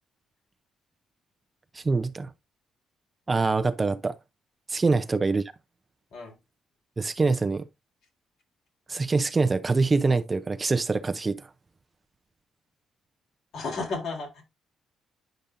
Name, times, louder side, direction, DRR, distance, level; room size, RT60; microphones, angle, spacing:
voice 1, 1.7-2.3 3.3-4.2 4.7-5.4 7.0-7.6 8.9-11.5, right 3 dB, 25° right, 0.6 m, -24 dB
voice 2, 13.5-14.4, left 3 dB, 70° left, 3.7 m, -33 dB
10.0 x 5.3 x 2.6 m
cardioid pair, 90°, 0 cm